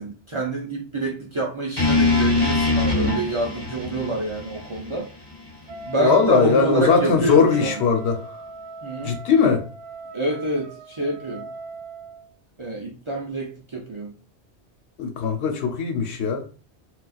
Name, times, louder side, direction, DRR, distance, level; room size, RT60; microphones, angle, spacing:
voice 1, 0.0-5.1 5.9-7.8 8.8-9.2 10.1-11.5 12.6-14.1, right 2 dB, 40° right, 0.4 m, -27 dB
sound 1, 1.8-5.9, left 3 dB, 25° left, 1.2 m, -23 dB
Wind instrument woodwind instrument, 5.7-12.3, right 3 dB, 65° right, 0.9 m, -39 dB
voice 2, 6.0-8.2 9.0-9.6 15.0-16.5, left 5 dB, 75° left, 0.9 m, -19 dB
3.9 x 2.3 x 2.4 m
omnidirectional pair, 1.1 m